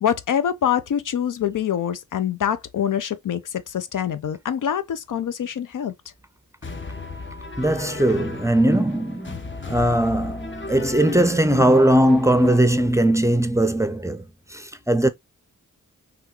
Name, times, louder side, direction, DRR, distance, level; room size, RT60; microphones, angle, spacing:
voice 1, 0.0-5.9, left 9 dB, 65° left, 0.5 m, -25 dB
sound 1, 6.6-12.6, left 3 dB, 35° left, 0.8 m, -35 dB
voice 2, 7.6-14.2 14.5-15.1, right 1 dB, 10° right, 0.5 m, -19 dB
3.5 x 2.4 x 2.8 m
cardioid pair, 45°, 34 cm